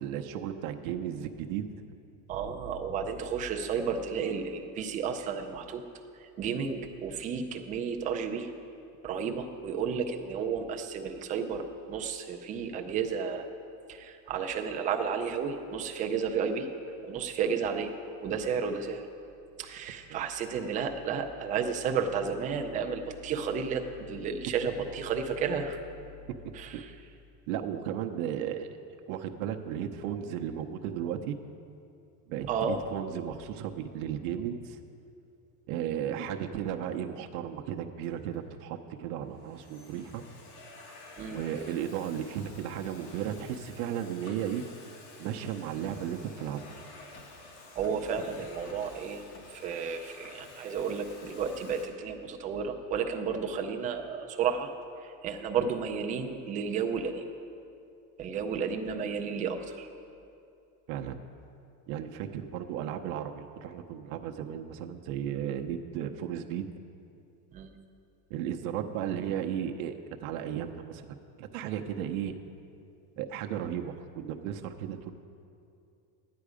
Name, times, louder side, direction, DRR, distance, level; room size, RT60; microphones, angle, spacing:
voice 1, 0.0-1.8 20.1-20.3 26.3-26.8 27.5-28.8 29.1-31.4 32.3-34.8 35.7-40.2 41.3-44.6 45.2-46.7 60.9-61.2 61.9-66.7 68.3-69.9 70.2-71.1 71.4-72.4 73.2-75.1, right 9 dB, 75° right, 4 dB, 0.8 m, -35 dB
voice 2, 2.3-5.8 6.2-8.5 9.0-13.5 13.9-16.7 17.0-17.9 18.2-19.0 19.6-25.8 26.5-26.9 32.5-32.8 41.2-41.4 47.7-49.2 49.5-54.7 55.0-57.3 58.2-59.9 67.5-67.7, right 6 dB, 20° right, 4 dB, 0.3 m, -32 dB
Domestic sounds home sounds, 38.0-38.4 39.1-51.9, left 3 dB, 85° left, 2.1 m, -51 dB
13.0 x 9.5 x 4.9 m, 2.6 s
cardioid pair, 175°, 42 cm